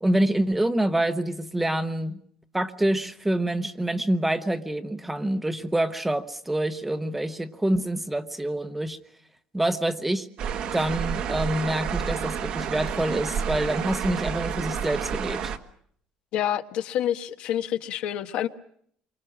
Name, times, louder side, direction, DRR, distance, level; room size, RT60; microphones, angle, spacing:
voice 1, 0.0-2.2 2.5-9.0 9.5-10.3 10.7-15.5, right 1 dB, 5° right, 1.0 m, -26 dB
sound 1, 10.4-15.6, right 7 dB, 50° right, 1.5 m, -30 dB
voice 2, 16.3-18.5, left 10 dB, 60° left, 1.3 m, -27 dB
28.5 x 24.5 x 6.2 m
cardioid pair, 160°, 2 cm